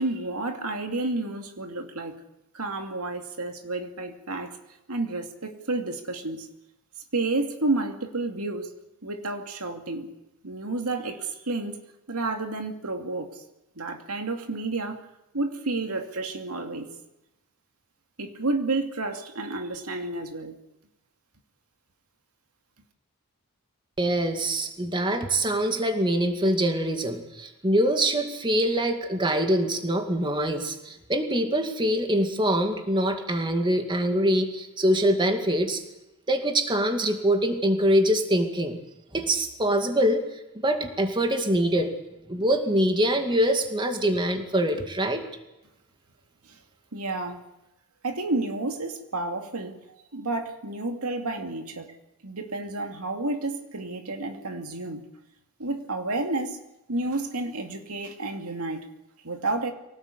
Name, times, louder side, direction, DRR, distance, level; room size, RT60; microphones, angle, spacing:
voice 1, 0.0-2.2 2.5-4.6 4.9-6.5 7.1-8.7 9.0-10.1 10.4-11.8 12.1-13.4 13.8-15.0 15.3-16.9 18.2-20.5 46.9-47.4 48.0-49.8 50.1-51.9 52.2-55.1 55.6-56.6 56.9-58.9 59.2-59.7, right 2 dB, 80° right, 5 dB, 2.6 m, -30 dB
voice 2, 24.0-35.8 36.3-38.8 39.1-40.2 40.6-41.9 42.3-45.2, right 1 dB, 20° right, 6 dB, 2.3 m, -24 dB
24.5 x 18.0 x 8.3 m, 0.94 s
head